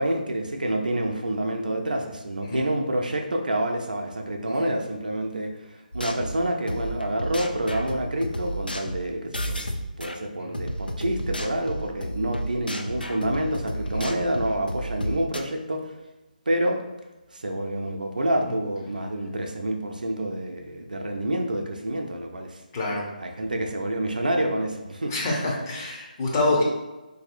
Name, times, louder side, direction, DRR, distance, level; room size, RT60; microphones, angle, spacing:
voice 1, 0.0-9.6 10.0-15.9 16.5-16.8 17.3-22.6 23.2-25.1 26.4-26.6, right 1 dB, 65° right, 3 dB, 0.5 m, -28 dB
sound 1, 5.9-10.2 10.5-15.4, equal, 90° left, 0.4 m, -32 dB
voice 2, 22.7-23.1 25.1-26.6, left 2 dB, 25° left, -4 dB, 0.7 m, -26 dB
4.0 x 2.7 x 2.5 m, 1.1 s
figure-of-eight pair, 150°, 5 cm